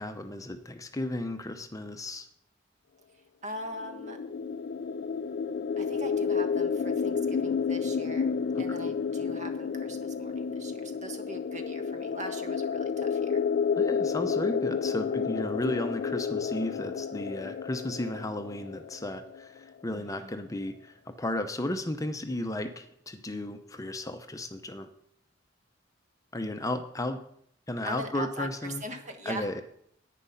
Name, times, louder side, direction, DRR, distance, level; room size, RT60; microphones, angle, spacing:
voice 1, 0.0-2.3 13.8-24.9 26.3-27.2 27.7-28.8 29.3-29.6, left 1 dB, 20° left, 8 dB, 0.7 m, -34 dB
voice 2, 3.4-4.2 5.8-13.4 19.9-20.3 27.8-29.6, right 1 dB, 40° right, 6 dB, 1.4 m, -41 dB
sound 1, 3.7-19.4, left 6 dB, 55° left, 0.4 m, -31 dB
10.5 x 9.3 x 5.6 m, 0.69 s
head